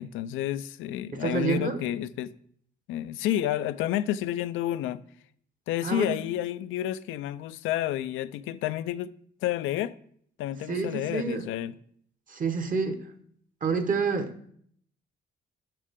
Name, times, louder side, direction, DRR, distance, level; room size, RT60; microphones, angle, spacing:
voice 1, 0.0-2.3 2.9-5.0 5.7-9.1 9.4-9.9 10.4-11.7, left 12 dB, 90° left, 0.4 m, -30 dB
voice 2, 1.1-1.8 5.8-6.2 10.7-11.5 12.3-13.1 13.6-14.5, right 4 dB, 40° right, 1.2 m, -28 dB
10.0 x 6.5 x 3.6 m
cardioid pair, 90°, 20 cm